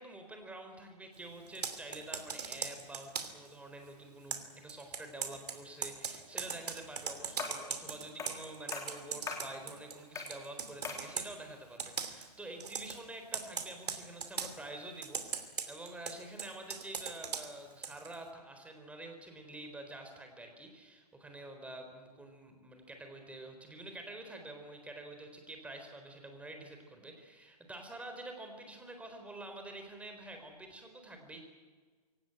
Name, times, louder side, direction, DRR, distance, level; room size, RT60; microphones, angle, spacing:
voice 1, 0.0-31.4, right 2 dB, 5° right, 5 dB, 4.1 m, -48 dB
Computer keyboard, 1.5-3.5 4.3-10.0 10.3-11.3 11.8-12.3 12.6-13.0 13.3-14.5 15.0-18.2, right 6 dB, 75° right, 2.8 m, -40 dB
sound 1, 7.4-7.7 8.2-8.4 8.7-9.5 10.1-10.4 10.8-11.1, left 4 dB, 15° left, 3.4 m, -40 dB
23.5 x 17.5 x 9.1 m, 1.5 s
hypercardioid pair, 125°, 20 cm